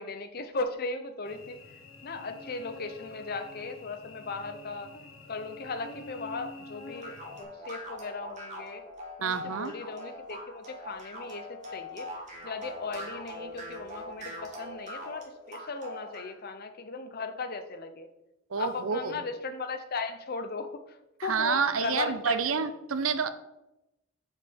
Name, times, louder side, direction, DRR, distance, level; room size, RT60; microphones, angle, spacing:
voice 1, 0.0-1.6 2.0-4.9 5.3-8.8 9.2-12.1 12.4-18.1 18.6-22.4, left 3 dB, 50° left, 8 dB, 0.8 m, -37 dB
Cricket / Buzz, 1.2-7.4, left 2 dB, 85° left, 1.4 m, -47 dB
sound 1, 7.0-16.3, left 1 dB, 35° right, 2.0 m, -42 dB
voice 2, 9.2-9.7 18.5-19.2 21.2-23.3, right 6 dB, 90° right, 12 dB, 0.6 m, -29 dB
7.2 x 5.6 x 5.3 m, 0.93 s
head